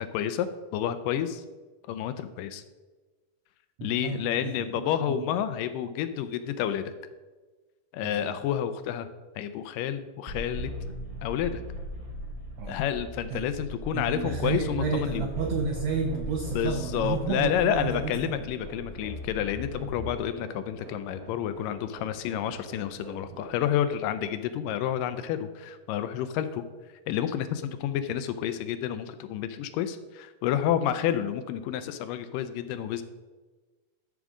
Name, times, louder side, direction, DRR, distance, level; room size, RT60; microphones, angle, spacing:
voice 1, 0.0-1.4 1.9-2.6 3.8-6.9 7.9-9.1 9.4-10.7 11.2-11.6 12.7-15.3 16.6-26.6 27.1-33.0, left 10 dB, 80° left, 11 dB, 2.1 m, -30 dB
voice 2, 3.8-5.3 8.0-8.4 12.6-12.8 13.3-13.5 13.9-18.5, right 6 dB, 80° right, 3 dB, 1.5 m, -32 dB
sound 1, 10.3-20.1, left 1 dB, 25° right, 0.6 m, -38 dB
sound 2, 14.7-23.5, right 1 dB, 50° right, 1.9 m, -46 dB
12.5 x 6.1 x 3.7 m, 1.3 s
omnidirectional pair, 4.0 m